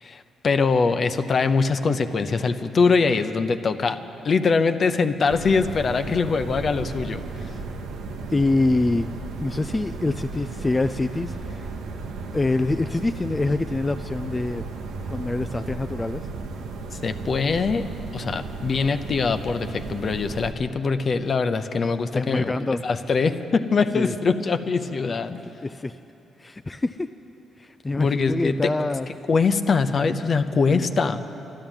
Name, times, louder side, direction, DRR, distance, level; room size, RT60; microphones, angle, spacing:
voice 1, 0.0-4.0 4.2-7.5 17.0-17.8 18.1-22.5 22.8-25.4 28.0-28.6 29.3-31.2, left 4 dB, 45° left, 9 dB, 0.7 m, -23 dB
sound 1, 5.3-20.5, right 3 dB, 90° right, 1.0 m, -34 dB
voice 2, 8.3-9.1 9.4-11.7 12.3-14.6 15.1-16.3 22.1-22.8 23.9-24.1 25.6-26.0 26.4-27.1 27.6-29.1 30.7-30.9, left 2 dB, 20° left, 9 dB, 0.3 m, -25 dB
13.0 x 11.0 x 8.9 m, 3.0 s
cardioid pair, 80°, 0 cm